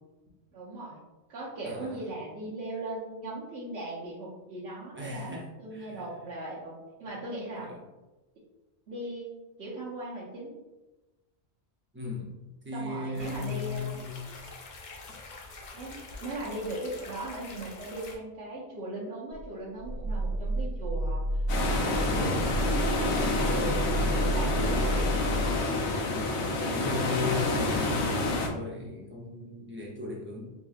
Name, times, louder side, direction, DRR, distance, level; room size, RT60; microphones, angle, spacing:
voice 1, 0.5-1.0 1.3-5.3 5.6-7.8 8.9-9.3 9.6-10.5 12.7-14.0 15.7-21.4 21.7-25.2, right 1 dB, 85° right, -8 dB, 1.1 m, -38 dB
voice 2, 1.6-2.0 4.9-6.0 7.5-7.8 11.9-14.3 26.1-30.5, left 3 dB, 15° right, -3 dB, 0.5 m, -37 dB
sound 1, 13.1-18.2, left 3 dB, 55° left, 0.6 m, -45 dB
Growling, 19.3-25.7, right 1 dB, 60° right, 1.0 m, -30 dB
sound 2, 21.5-28.5, left 2 dB, 85° left, 0.9 m, -28 dB
3.6 x 2.8 x 2.4 m, 1.1 s
omnidirectional pair, 1.1 m